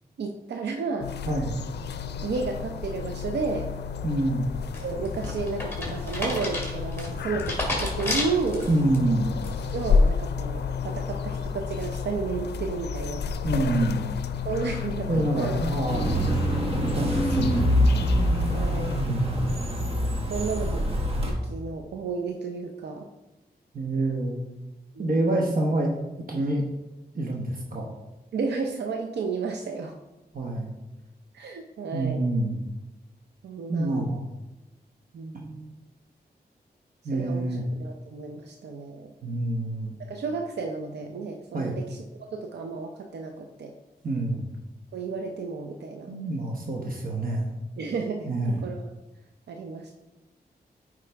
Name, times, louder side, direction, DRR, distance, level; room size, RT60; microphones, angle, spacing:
voice 1, 0.2-1.1 2.1-3.7 4.8-8.7 9.7-13.2 14.4-15.6 18.5-19.0 20.3-20.9 21.2-23.1 24.9-25.1 28.3-30.0 31.3-32.3 33.4-34.1 35.1-35.8 37.1-39.1 40.0-42.0 42.3-43.7 44.9-46.1 47.8-48.9 49.5-49.9, right 4 dB, 90° right, 3 dB, 0.6 m, -32 dB
sound 1, 1.0-19.1, left 5 dB, 85° left, 0.4 m, -31 dB
voice 2, 1.3-1.6 4.0-4.5 8.7-9.4 13.4-14.1 15.1-16.2 16.7-17.7 19.0-19.5 23.7-24.4 25.0-25.9 26.3-26.6 27.1-28.0 30.3-30.7 31.9-32.6 33.7-34.3 37.0-37.6 39.2-39.9 41.5-41.8 44.0-44.5 46.1-47.5 48.3-48.6, right 2 dB, 55° right, 0 dB, 1.0 m, -27 dB
sound 2, 4.7-9.0 9.4-9.8, left 1 dB, 15° left, 2.4 m, -32 dB
sound 3, 15.9-21.3, equal, 35° right, 1.3 m, -25 dB
8.5 x 4.8 x 3.4 m, 1.0 s
cardioid pair, 80°, 17 cm